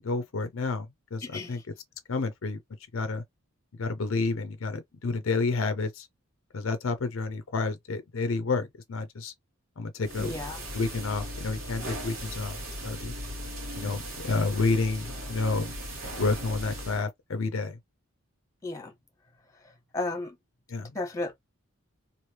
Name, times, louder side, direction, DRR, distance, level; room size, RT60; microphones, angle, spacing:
voice 1, 0.0-1.6 2.1-2.6 2.9-3.2 3.8-6.1 6.5-9.3 9.8-10.3 10.7-12.6 12.8-13.1 13.7-15.7 16.2-17.8 20.7-20.9, left 3 dB, 65° left, 0.5 m, -30 dB
voice 2, 1.2-1.6 10.2-10.6 18.6-18.9 19.6-20.4 20.9-21.4, left 2 dB, 15° left, 1.2 m, -34 dB
sound 1, 10.0-17.0, equal, 75° right, 1.5 m, -38 dB
3.2 x 2.6 x 2.9 m
head